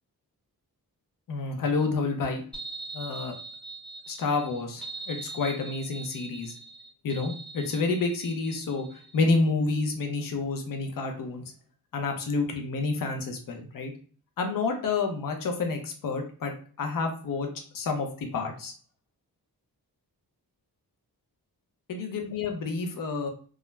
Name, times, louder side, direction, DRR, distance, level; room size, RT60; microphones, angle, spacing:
voice 1, 1.3-2.4 2.9-3.4 4.1-6.5 7.0-8.9 9.1-11.4 11.9-13.9 14.4-17.5 17.7-18.7 21.9-23.3, left 3 dB, 60° left, 4 dB, 0.6 m, -29 dB
sound 1, 2.5-9.2, right 3 dB, 5° left, 0.5 m, -42 dB
2.3 x 2.0 x 3.1 m, 0.42 s
wide cardioid pair, 160°, 39 cm